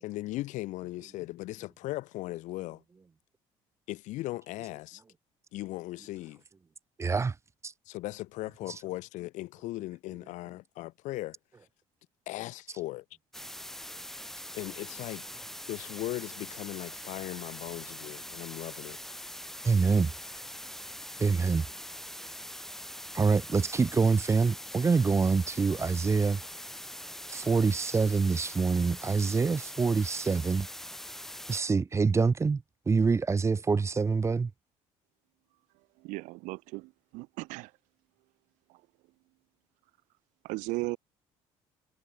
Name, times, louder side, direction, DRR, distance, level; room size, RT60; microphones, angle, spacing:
voice 1, 0.0-2.8 3.9-5.0 5.5-6.4 7.9-11.4 12.3-13.0 14.5-15.3 15.7-19.0, left 18 dB, 80° left, 1.0 m, -38 dB
voice 2, 7.0-7.3 7.6-7.7 19.6-20.1 21.2-21.6 23.1-26.4 27.3-30.7 31.5-34.5, right 4 dB, 20° right, 0.5 m, -26 dB
sound 1, 13.3-31.6, left 1 dB, 5° left, 1.0 m, -43 dB
voice 3, 36.0-37.7 40.4-41.0, right 24 dB, 85° right, 0.5 m, -36 dB
supercardioid pair, 85°, 13 cm